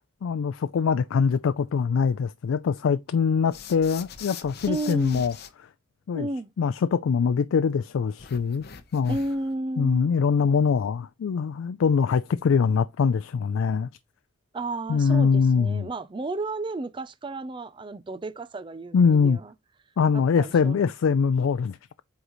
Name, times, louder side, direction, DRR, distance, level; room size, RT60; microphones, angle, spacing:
voice 1, 0.2-5.3 6.1-6.3 6.6-8.6 8.9-9.2 9.8-13.9 14.9-15.9 18.9-19.4 20.0-21.8, left 6 dB, 85° left, 0.4 m, -23 dB
sound 1, 3.5-5.5 8.2-9.5, left 7 dB, 50° left, 0.8 m, -43 dB
voice 2, 4.7-5.2 6.1-6.5 9.1-10.1 14.5-19.5 20.1-20.8, right 2 dB, 25° right, 0.4 m, -32 dB
8.0 x 3.9 x 3.0 m
head